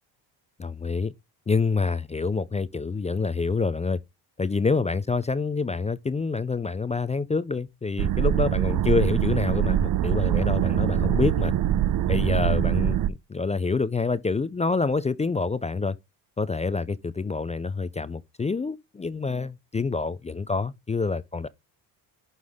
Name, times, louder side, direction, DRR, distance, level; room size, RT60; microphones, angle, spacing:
voice 1, 0.6-1.1 1.5-4.0 4.4-11.5 12.1-16.0 16.4-21.5, left 4 dB, 15° left, 0.3 m, -27 dB
sound 1, 8.0-13.1, right 11 dB, 45° right, 0.6 m, -23 dB
11.5 x 3.9 x 3.5 m
supercardioid pair, 80°, 48 cm